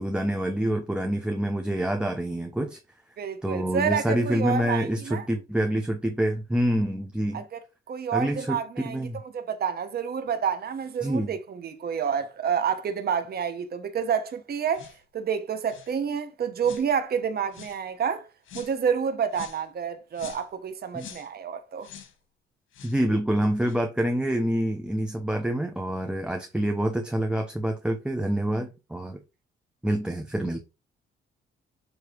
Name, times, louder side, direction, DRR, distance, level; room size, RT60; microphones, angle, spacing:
voice 1, 0.0-2.8 3.4-7.4 8.1-9.2 11.0-11.3 20.9-21.1 22.8-29.2 29.8-30.7, right 1 dB, 5° right, 1.0 m, -27 dB
voice 2, 3.2-5.3 7.3-7.6 7.9-18.3 18.5-21.9, right 7 dB, 50° right, 1.3 m, -29 dB
sound 1, 14.7-15.0 15.7-16.0 16.6-16.9 17.5-17.8 18.4-18.8 19.3-19.7 20.1-20.5 21.0-21.3 21.8-22.1 22.7-23.0 23.6-23.8, left 9 dB, 80° left, 1.5 m, -45 dB
7.3 x 3.2 x 4.6 m
cardioid pair, 90°, 20 cm